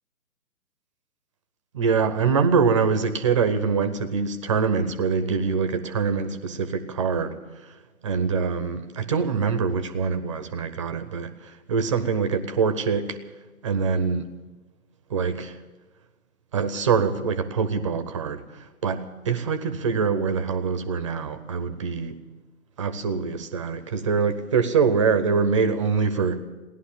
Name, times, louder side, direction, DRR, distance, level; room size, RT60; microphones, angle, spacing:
voice 1, 1.7-7.7 8.0-13.2 13.6-14.3 15.1-15.6 16.5-22.2 22.8-26.4, right 5 dB, 20° right, 0.6 m, -24 dB
16.5 x 11.5 x 7.4 m
figure-of-eight pair, 135°, 43 cm